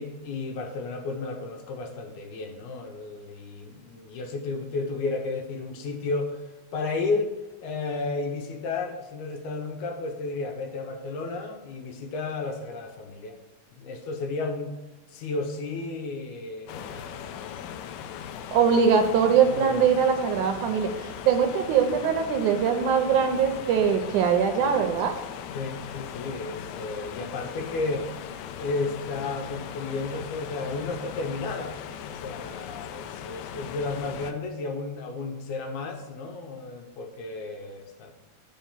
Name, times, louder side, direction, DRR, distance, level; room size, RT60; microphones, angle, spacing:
voice 1, 0.0-6.4 6.7-7.3 7.6-13.4 13.7-14.8 15.1-18.4 19.5-19.9 25.5-28.1 28.6-38.1, left 3 dB, 75° left, 4 dB, 2.1 m, -33 dB
sound 1, 16.7-34.3, left 9 dB, 90° left, 1.6 m, -39 dB
voice 2, 18.5-25.1, right 7 dB, 75° right, 5 dB, 2.0 m, -22 dB
9.1 x 4.7 x 5.7 m, 1.0 s
omnidirectional pair, 3.8 m